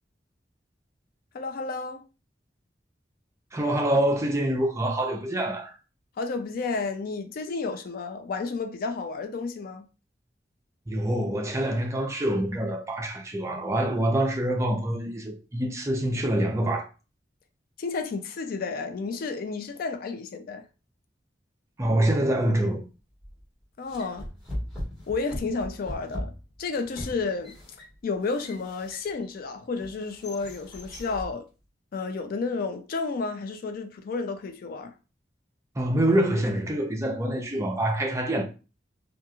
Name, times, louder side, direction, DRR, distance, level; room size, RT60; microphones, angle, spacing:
voice 1, 1.3-2.0 6.2-9.9 17.8-20.7 23.8-24.3 25.1-27.6 28.0-31.5 31.9-34.9, left 4 dB, 55° left, 0.4 m, -31 dB
voice 2, 3.5-5.8 10.9-16.9 21.8-22.8 35.8-38.4, right 1 dB, 15° right, 0.5 m, -25 dB
sound 1, 23.2-23.4 23.9-29.3 29.8-31.3, equal, 5° left, 1.3 m, -39 dB
2.9 x 2.4 x 2.3 m
head